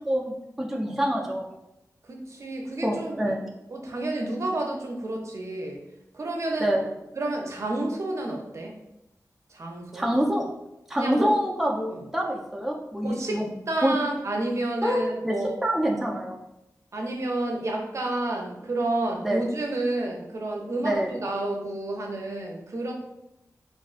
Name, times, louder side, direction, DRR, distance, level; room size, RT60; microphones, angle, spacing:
voice 1, 0.1-1.5 2.8-3.5 6.6-6.9 9.9-10.5 10.9-13.5 13.8-14.0 14.8-15.4 15.6-16.4 19.2-19.4 20.8-21.2, equal, 5° right, -1 dB, 0.3 m, -26 dB
voice 2, 2.1-3.3 3.7-5.8 6.1-6.7 7.2-8.7 9.5-10.1 11.0-11.3 11.9-12.0 13.0-13.4 13.7-15.6 16.9-22.9, right 2 dB, 50° right, 0 dB, 0.6 m, -30 dB
3.5 x 2.4 x 2.4 m, 0.88 s
wide cardioid pair, 105°, 6 cm